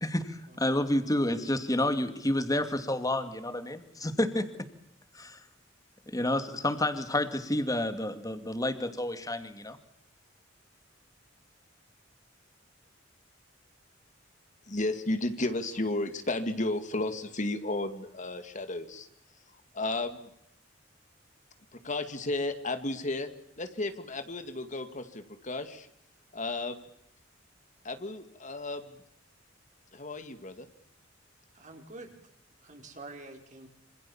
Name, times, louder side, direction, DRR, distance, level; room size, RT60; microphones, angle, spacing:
voice 1, 0.0-4.5 5.1-5.4 6.1-9.8, left 1 dB, 20° left, 9 dB, 2.5 m, -29 dB
voice 2, 14.7-19.1 19.7-20.3 21.7-23.3 23.6-25.9 26.3-26.9 27.8-29.0 29.9-30.7, left 2 dB, 40° left, 9 dB, 2.3 m, -33 dB
voice 3, 31.5-32.2 32.6-33.7, right 2 dB, 40° right, 3 dB, 4.8 m, -47 dB
27.0 x 27.0 x 7.3 m, 0.73 s
head